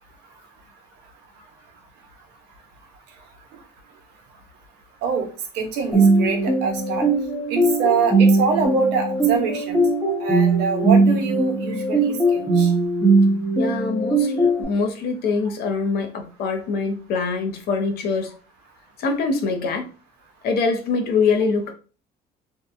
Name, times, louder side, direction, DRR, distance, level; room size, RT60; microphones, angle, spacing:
voice 1, 5.5-7.1 7.5-9.8 10.2-12.7, right 5 dB, 80° right, 3 dB, 0.7 m, -24 dB
sound 1, 5.9-14.6, right 3 dB, 5° left, 0.8 m, -19 dB
voice 2, 13.5-18.3 19.0-19.9 20.4-21.7, left 4 dB, 70° left, 5 dB, 0.6 m, -24 dB
2.7 x 2.1 x 2.5 m, 0.36 s
cardioid pair, 110°, 17 cm